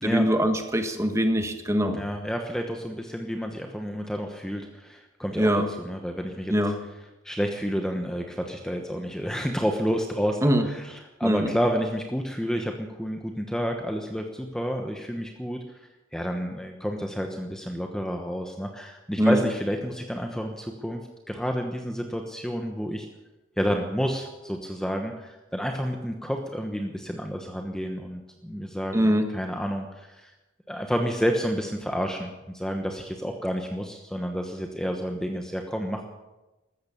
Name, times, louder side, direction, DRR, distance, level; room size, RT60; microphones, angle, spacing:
voice 1, 0.0-2.0 5.3-5.7 6.5-6.8 10.4-10.6 11.2-11.5 19.2-19.4 28.9-29.2, equal, 15° right, 6 dB, 1.4 m, -22 dB
voice 2, 1.9-5.5 5.8-6.5 7.2-15.6 16.1-21.0 21.3-23.1 23.6-30.3 30.7-36.1, equal, 5° left, 3 dB, 1.1 m, -30 dB
14.5 x 13.5 x 6.9 m, 1.1 s
head